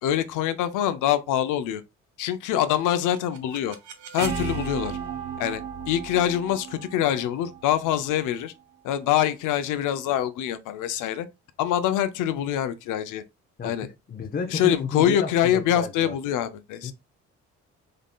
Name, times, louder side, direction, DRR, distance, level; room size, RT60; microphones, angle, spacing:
voice 1, 0.0-1.8 2.2-3.8 4.1-5.0 5.4-8.5 8.8-11.3 11.6-13.2 13.6-13.9 14.5-16.9, left 11 dB, 90° left, 0.6 m, -25 dB
sound 1, 2.7-8.6, right 7 dB, 75° right, 0.8 m, -35 dB
voice 2, 13.6-16.2 16.8-16.9, left 5 dB, 30° left, 0.6 m, -32 dB
3.8 x 3.6 x 2.2 m
cardioid pair, 90°, 30 cm